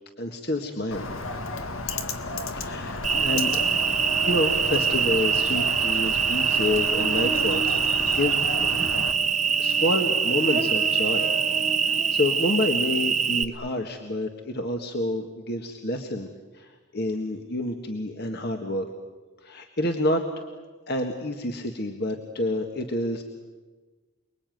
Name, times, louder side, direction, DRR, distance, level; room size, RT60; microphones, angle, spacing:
voice 1, 0.2-1.1 2.6-3.6 4.2-7.8 8.1-9.3 9.6-11.3 11.8-16.3 16.5-18.9 19.4-20.2 20.5-23.2, left 1 dB, 50° left, 4 dB, 1.7 m, -28 dB
Bird, 0.9-9.1, left 3 dB, 70° left, 2.0 m, -33 dB
Cricket, 3.0-13.4, right 6 dB, 35° right, 1.1 m, -24 dB
29.0 x 21.0 x 9.3 m, 1.3 s
head